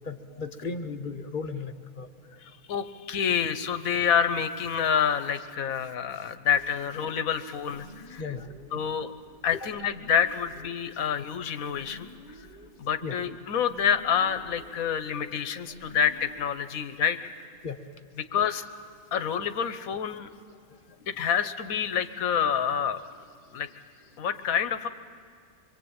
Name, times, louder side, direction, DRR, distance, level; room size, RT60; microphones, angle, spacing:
voice 1, 0.0-2.1 8.2-8.5 8.7-8.9 9.5-9.6 13.0-13.2 17.6-17.8, left 4 dB, 35° left, 7 dB, 1.1 m, -35 dB
voice 2, 2.4-8.2 8.7-9.1 9.4-12.1 12.8-17.2 18.3-18.7 19.1-20.3 21.1-23.0 23.5-23.7 24.2-24.9, left 8 dB, 65° left, 10 dB, 1.4 m, -27 dB
sound 1, 6.5-16.5, equal, 50° right, 2.6 m, -51 dB
24.5 x 23.5 x 8.9 m, 2.2 s
omnidirectional pair, 1.6 m